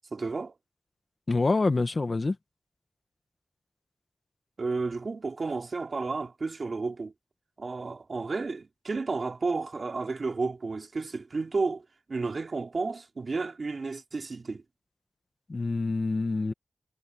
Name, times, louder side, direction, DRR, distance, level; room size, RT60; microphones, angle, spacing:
voice 1, 0.1-0.5 4.6-7.1 7.6-14.6, right 3 dB, 55° right, 2.8 m, -32 dB
voice 2, 1.3-2.3 15.5-16.5, left 3 dB, 45° left, 1.5 m, -26 dB
wide cardioid pair, 95°, 0 cm